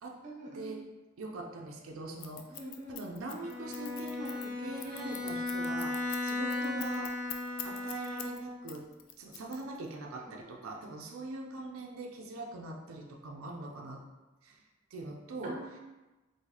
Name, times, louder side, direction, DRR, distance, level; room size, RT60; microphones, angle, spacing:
voice 1, 0.2-0.7 2.5-3.0 6.6-6.8 10.3-10.4 11.4-11.6 15.4-15.8, right 1 dB, 35° right, -1 dB, 0.6 m, -45 dB
voice 2, 1.2-2.6 2.9-7.1 7.6-8.8 9.2-14.0 14.4-14.6 14.9-15.6, right 2 dB, 85° right, 0 dB, 0.4 m, -42 dB
Scissors, 2.2-8.4 8.7-9.9, left 11 dB, 70° left, 0.4 m, -44 dB
Bowed string instrument, 3.4-8.6, left 2 dB, 40° left, 0.9 m, -36 dB
3.9 x 2.7 x 2.8 m, 1.1 s
head